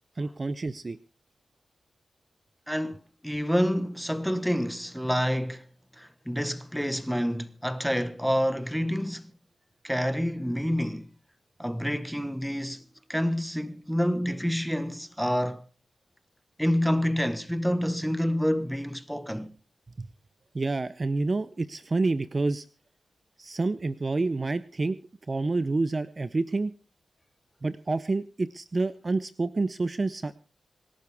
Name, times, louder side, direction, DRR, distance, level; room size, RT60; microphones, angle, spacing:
voice 1, 0.2-1.0 20.0-20.1 20.5-22.6 23.4-25.0 25.3-26.7 27.6-30.3, right 3 dB, 35° right, 0.7 m, -28 dB
voice 2, 2.7-5.6 6.0-9.3 9.8-11.1 11.6-12.8 13.1-15.6 16.6-19.5, equal, ahead, 1.3 m, -28 dB
26.5 x 11.5 x 3.5 m
cardioid pair, 75°, 0 cm